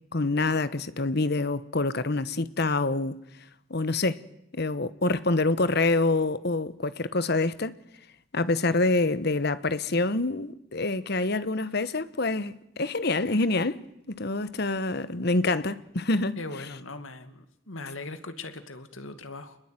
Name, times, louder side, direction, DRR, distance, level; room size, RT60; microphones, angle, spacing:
voice 1, 0.1-3.2 3.7-4.2 4.5-7.7 8.3-13.8 14.1-16.4, left 2 dB, 55° left, 1.2 m, -26 dB
voice 2, 16.4-19.6, left 2 dB, 85° left, 2.4 m, -40 dB
28.5 x 21.0 x 9.2 m
head